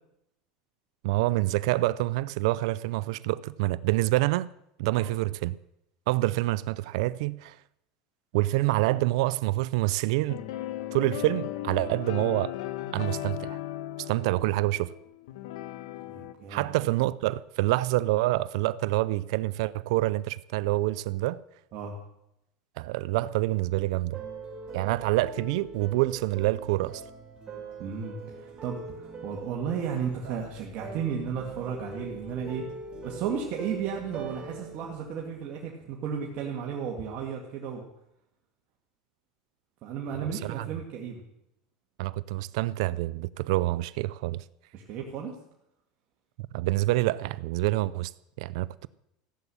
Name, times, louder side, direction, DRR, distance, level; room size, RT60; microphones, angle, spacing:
voice 1, 1.0-4.5 4.8-5.6 6.1-7.6 8.3-10.4 10.9-12.6 12.9-13.6 14.1-14.9 16.5-21.4 22.8-24.2 24.7-27.0 40.4-40.7 42.0-44.4 46.5-48.1 48.4-48.9, right 18 dB, 75° right, 0.5 m, -27 dB
sound 1, 10.3-16.3, left 14 dB, 80° left, 1.1 m, -37 dB
voice 2, 16.1-16.7 21.7-22.0 27.8-32.7 33.0-37.8 39.8-41.2 44.7-45.3, right 7 dB, 50° right, 2.2 m, -34 dB
sound 2, 24.1-36.3, right 4 dB, 25° right, 5.3 m, -42 dB
15.0 x 8.2 x 10.0 m
supercardioid pair, 125°, 3 cm